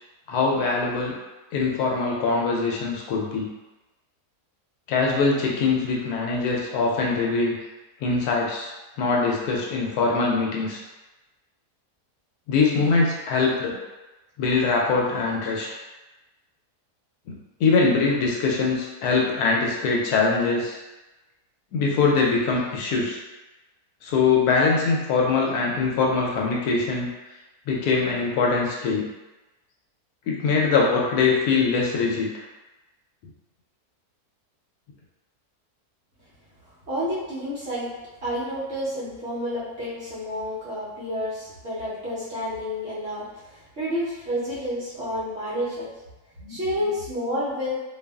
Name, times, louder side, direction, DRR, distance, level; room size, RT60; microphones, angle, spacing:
voice 1, 0.3-1.2 1.5-3.5 4.9-7.6 8.0-8.7 9.0-10.8 12.5-13.8 14.4-15.7 17.6-20.8 21.7-23.2 24.0-27.1 27.7-29.0 30.3-32.4, left 4 dB, 85° left, -2 dB, 1.1 m, -22 dB
voice 2, 36.9-37.9 38.2-45.9 46.4-47.8, equal, 55° right, -9 dB, 1.0 m, -30 dB
2.7 x 2.4 x 2.2 m, 1.1 s
omnidirectional pair, 1.6 m